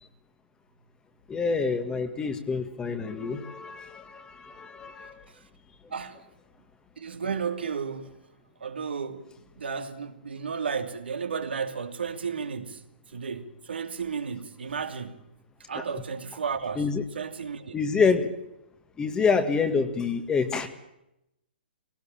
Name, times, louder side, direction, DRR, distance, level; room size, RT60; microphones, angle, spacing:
voice 1, 1.3-5.2 16.8-17.0 17.7-18.3 19.0-20.7, left 5 dB, 15° left, 1.9 m, -27 dB
voice 2, 5.9-6.2 7.0-8.2 8.6-9.3 9.6-15.2 15.7-17.8, right 6 dB, 85° right, 2.7 m, -33 dB
20.0 x 18.0 x 8.8 m
hypercardioid pair, 140°, 6 cm